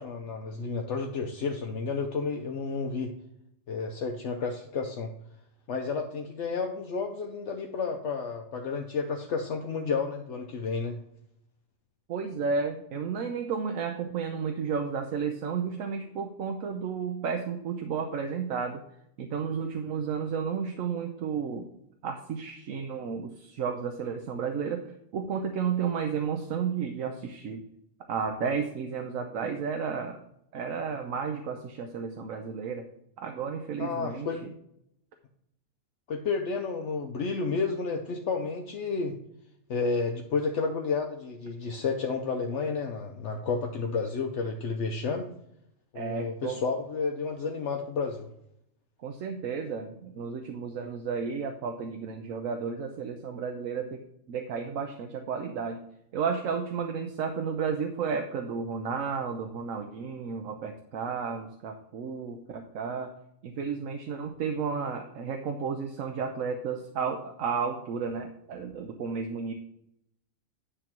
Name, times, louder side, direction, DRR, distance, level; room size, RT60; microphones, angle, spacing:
voice 1, 0.0-3.2 3.7-5.1 5.7-11.0 33.8-34.4 36.1-39.2 39.7-45.3 45.9-48.3, left 4 dB, 65° left, 3 dB, 1.0 m, -31 dB
voice 2, 12.1-18.8 19.2-21.7 22.0-27.6 28.1-30.2 30.5-32.9 33.2-34.5 45.9-46.6 49.0-54.0 54.3-55.8 56.1-63.1 63.4-69.5, right 6 dB, 85° right, 5 dB, 1.1 m, -32 dB
9.9 x 3.7 x 5.9 m, 0.76 s
omnidirectional pair, 1.4 m